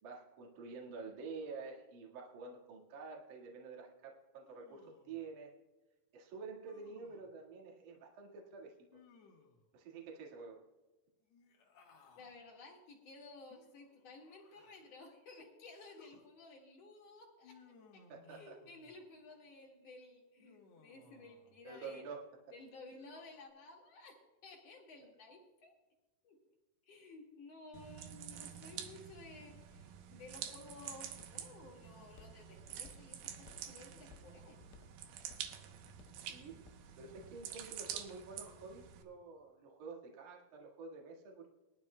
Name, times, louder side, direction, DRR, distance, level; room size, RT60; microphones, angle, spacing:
voice 1, 0.0-5.6 6.1-8.7 9.7-10.6 18.1-18.6 21.6-22.3 36.2-36.7 37.0-41.5, right 4 dB, 55° right, -1 dB, 2.9 m, -49 dB
Human voice, 4.4-5.2 6.6-7.3 8.9-9.7 11.3-12.4 13.5-15.0 15.7-16.3 17.4-19.0 20.4-21.6 22.6-23.5, left 4 dB, 65° left, 1.7 m, -63 dB
voice 2, 12.1-22.1 22.5-25.7 26.2-26.4 26.9-34.6, left 3 dB, 50° left, 0 dB, 2.3 m, -55 dB
sound 1, 27.7-39.0, right 9 dB, 75° right, 2.5 m, -48 dB
Walk footsteps, 29.5-37.4, left 5 dB, 85° left, 3.0 m, -61 dB
22.0 x 12.0 x 2.2 m, 1.1 s
omnidirectional pair, 4.7 m